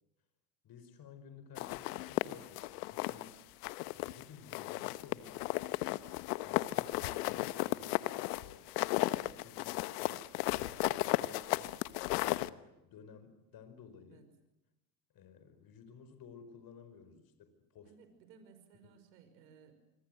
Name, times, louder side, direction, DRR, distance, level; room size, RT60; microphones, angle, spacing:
voice 1, 0.6-3.4 3.9-5.6 6.4-11.8 12.2-14.2 15.1-18.0, left 6 dB, 45° left, 10 dB, 4.9 m, -55 dB
sound 1, 1.6-3.3 3.6-4.2 4.5-12.5, left 19 dB, 70° left, 1.2 m, -35 dB
voice 2, 17.8-19.7, right 6 dB, 80° right, 9 dB, 5.9 m, -60 dB
27.0 x 24.0 x 7.9 m, 0.93 s
hypercardioid pair, 90°, 50 cm